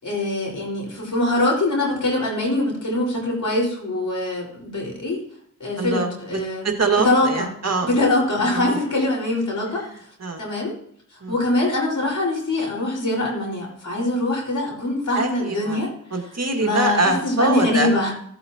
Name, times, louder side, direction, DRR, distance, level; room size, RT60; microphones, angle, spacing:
voice 1, 0.0-5.2 5.6-6.7 6.9-7.5 7.8-9.8 10.4-10.7 11.3-15.9 16.6-18.1, left 2 dB, 70° left, -2 dB, 4.9 m, -23 dB
voice 2, 5.8-7.9 8.5-8.8 9.8-10.5 11.2-11.3 15.1-15.8 16.1-17.9, right 3 dB, 55° right, 3 dB, 2.0 m, -24 dB
15.5 x 8.6 x 2.9 m, 0.67 s
cardioid pair, 50°, 31 cm